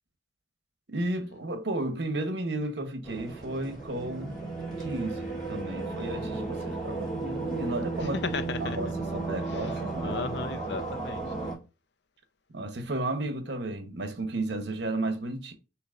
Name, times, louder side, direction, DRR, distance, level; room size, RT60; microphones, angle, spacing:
voice 1, 0.9-4.4 4.8-8.2 8.6-10.2 12.5-15.5, right 2 dB, 65° right, 0.9 m, -33 dB
sound 1, 3.0-11.5, right 3 dB, 5° left, 2.9 m, -34 dB
voice 2, 8.0-8.8 9.4-11.6, left 4 dB, 65° left, 0.5 m, -36 dB
6.8 x 3.0 x 2.5 m
head